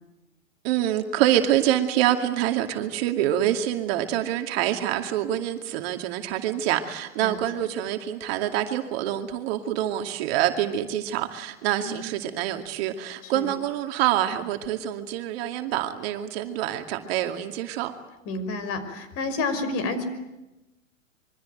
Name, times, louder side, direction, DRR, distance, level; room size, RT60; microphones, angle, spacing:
voice 1, 0.6-17.9, right 12 dB, 45° right, 6 dB, 2.4 m, -26 dB
voice 2, 18.3-20.0, left 3 dB, 35° left, 10 dB, 5.7 m, -30 dB
26.5 x 24.0 x 9.2 m, 1.0 s
hypercardioid pair, 110°, 40 cm